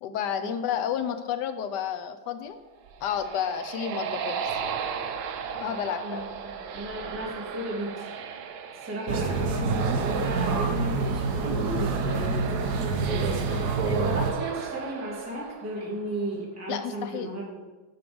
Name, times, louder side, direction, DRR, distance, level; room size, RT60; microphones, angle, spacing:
voice 1, 0.0-2.6 3.0-4.6 5.6-6.2 16.7-17.3, left 9 dB, 70° left, 9 dB, 1.0 m, -31 dB
sound 1, 2.7-16.2, right 7 dB, 85° right, 1.5 m, -36 dB
voice 2, 6.0-8.1 8.8-17.6, right 1 dB, 5° right, -7 dB, 2.4 m, -35 dB
sound 2, 9.1-14.3, right 4 dB, 60° right, 1.3 m, -27 dB
6.9 x 6.4 x 5.2 m, 1.2 s
omnidirectional pair, 2.2 m